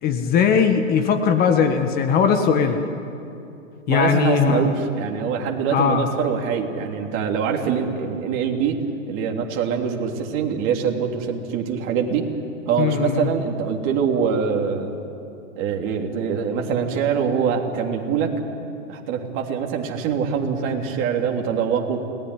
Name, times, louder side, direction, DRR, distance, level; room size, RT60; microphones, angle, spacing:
voice 1, 0.0-2.8 3.9-4.7 5.7-6.1 12.8-13.3, left 7 dB, 25° left, 6 dB, 1.6 m, -19 dB
voice 2, 3.9-8.8 9.1-12.3 12.7-14.9 15.6-18.3 18.9-22.0, right 6 dB, 30° right, 1 dB, 3.4 m, -24 dB
29.5 x 19.5 x 10.0 m, 2.8 s
hypercardioid pair, 145°, 40 cm